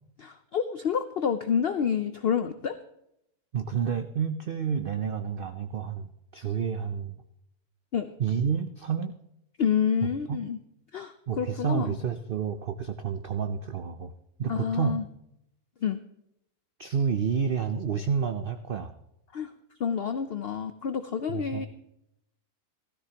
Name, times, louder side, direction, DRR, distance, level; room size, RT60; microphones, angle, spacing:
voice 1, 0.2-2.7 7.9-8.1 9.6-10.6 10.9-12.0 14.5-15.0 15.8-16.0 19.3-19.5 19.8-21.7, left 7 dB, 80° left, 10 dB, 0.5 m, -28 dB
voice 2, 3.5-7.1 8.2-9.1 10.3-10.4 11.3-14.1 14.4-15.0 16.8-18.9 21.3-21.7, right 7 dB, 85° right, 8 dB, 0.4 m, -29 dB
16.0 x 13.5 x 2.9 m, 0.81 s
omnidirectional pair, 1.7 m